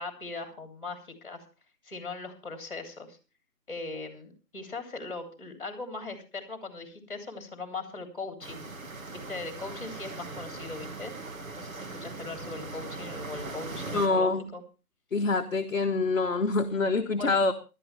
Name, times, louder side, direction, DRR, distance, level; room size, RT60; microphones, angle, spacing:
voice 1, 0.0-1.4 1.8-3.2 3.7-8.7 9.1-11.1 11.6-14.6 17.2-17.4, left 3 dB, 35° left, 7 dB, 3.2 m, -39 dB
sound 1, 8.4-14.1, right 3 dB, 55° right, 2.1 m, -40 dB
voice 2, 13.9-14.5 15.1-17.5, left 3 dB, 55° left, 4 dB, 1.1 m, -26 dB
19.0 x 12.0 x 3.4 m, 0.32 s
figure-of-eight pair, 165°, 47 cm